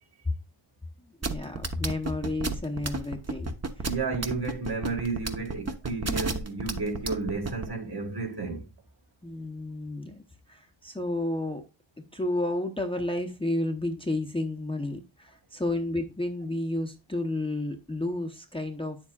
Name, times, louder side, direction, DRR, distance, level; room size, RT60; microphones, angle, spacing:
voice 1, 1.2-3.9 9.2-10.2 10.5-11.6 12.1-19.0, left 1 dB, 10° left, 0.8 m, -31 dB
sound 1, 1.2-7.7, right 4 dB, 30° right, 1.0 m, -31 dB
voice 2, 3.8-8.7, right 3 dB, 50° right, 2.1 m, -32 dB
9.2 x 7.3 x 2.4 m
wide cardioid pair, 90°, 50 cm